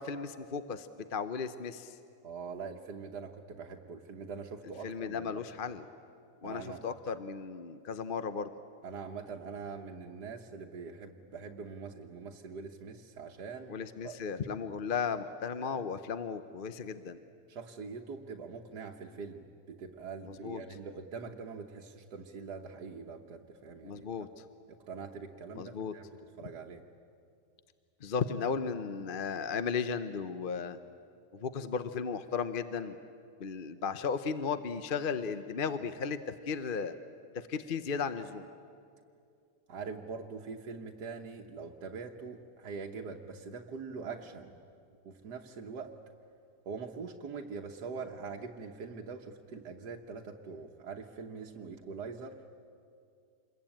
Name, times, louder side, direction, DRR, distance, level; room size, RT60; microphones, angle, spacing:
voice 1, 0.0-2.0 4.8-5.8 6.4-8.5 13.7-17.2 20.2-20.6 23.8-24.4 25.5-25.9 28.0-30.8 31.3-33.0 33.4-36.9 37.3-38.5, left 6 dB, 45° left, 11 dB, 0.7 m, -35 dB
voice 2, 2.2-5.4 6.4-6.9 8.8-14.1 17.5-24.1 24.7-26.0 26.4-26.8 39.7-44.6 45.0-45.9 46.6-52.4, right 5 dB, 90° right, 0 dB, 1.7 m, -43 dB
27.0 x 22.0 x 8.9 m, 2.4 s
omnidirectional pair, 1.7 m